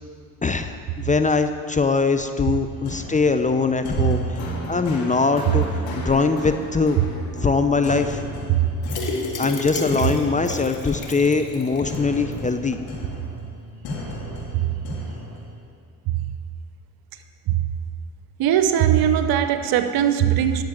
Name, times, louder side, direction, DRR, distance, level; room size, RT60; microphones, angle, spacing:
voice 1, 0.4-5.6 6.0-7.0 7.4-8.2 9.4-12.8, left 4 dB, 20° left, 8 dB, 0.7 m, -22 dB
sound 1, 2.6-15.5, left 1 dB, 70° left, 3.1 m, -34 dB
sound 2, 8.8-12.0 12.3-12.4 12.7-12.8, left 3 dB, 55° left, 2.0 m, -31 dB
voice 2, 18.4-20.6, right 10 dB, 70° right, 9 dB, 0.9 m, -19 dB
10.5 x 7.4 x 8.8 m, 2.2 s
supercardioid pair, 65°, 38 cm